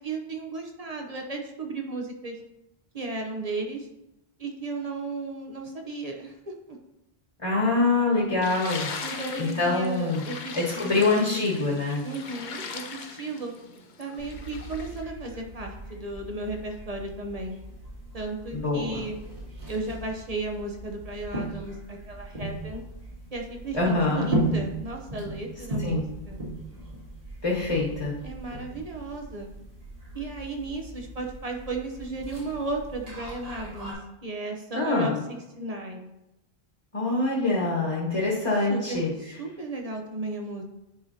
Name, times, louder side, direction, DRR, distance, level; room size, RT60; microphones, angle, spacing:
voice 1, 0.0-2.4 2.9-3.9 4.4-6.5 9.0-11.4 12.0-13.5 14.0-17.6 18.1-19.2 19.7-22.8 23.3-26.4 28.2-29.5 30.1-36.1 38.7-40.6, right 2 dB, 40° right, 2 dB, 0.9 m, -35 dB
voice 2, 7.4-8.9 9.4-10.2 10.5-12.0 18.5-19.0 23.7-24.3 25.8-26.0 27.4-28.1 34.7-35.1 36.9-39.1, left 3 dB, 30° left, -5 dB, 1.5 m, -25 dB
sound 1, 8.4-15.0, left 5 dB, 55° left, 0.8 m, -39 dB
sound 2, 14.2-33.9, right 1 dB, 65° right, 2.4 m, -37 dB
10.0 x 4.7 x 2.8 m, 0.91 s
omnidirectional pair, 1.0 m